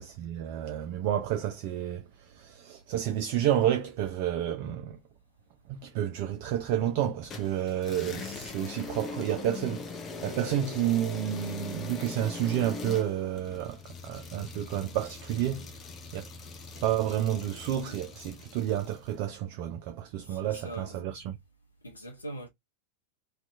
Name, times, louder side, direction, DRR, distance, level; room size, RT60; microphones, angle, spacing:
voice 1, 0.0-5.0 5.7-9.9 10.2-15.7 16.1-16.2 16.7-21.4, right 11 dB, 45° right, 0.3 m, -30 dB
sound 1, 7.3-19.1, left 4 dB, 25° left, 0.5 m, -41 dB
voice 2, 20.2-21.0 21.8-22.5, right 1 dB, 80° left, 0.6 m, -42 dB
2.7 x 2.3 x 2.3 m
figure-of-eight pair, 90°, 0 cm